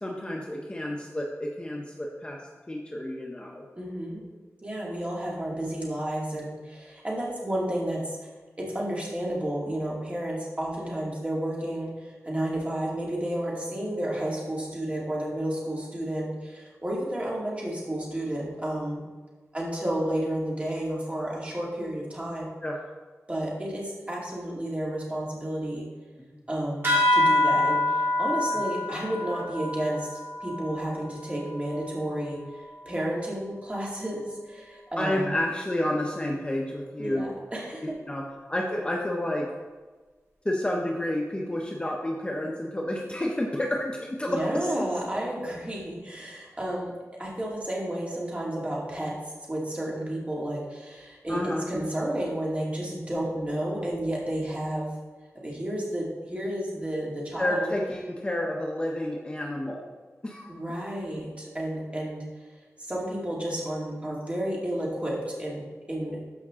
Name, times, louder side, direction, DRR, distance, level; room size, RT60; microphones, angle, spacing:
voice 1, 0.0-2.4 2.7-3.6 13.8-14.0 22.6-22.8 28.5-28.6 35.0-37.3 38.1-38.2 38.5-39.5 40.4-44.7 51.3-51.6 57.4-59.8 60.2-60.5, left 1 dB, 20° left, -1 dB, 0.9 m, -30 dB
voice 2, 3.8-4.2 4.6-8.3 8.6-19.0 19.5-22.5 23.3-25.9 26.5-35.3 37.0-37.9 44.3-46.9 47.2-49.1 49.5-51.4 51.7-54.9 55.4-57.7 60.5-62.2 62.8-66.2, right 1 dB, 25° right, -4 dB, 2.4 m, -31 dB
sound 1, 26.8-31.8, left 1 dB, 45° right, 2.4 m, -26 dB
13.0 x 5.3 x 3.7 m, 1.3 s
wide cardioid pair, 105°, 5 cm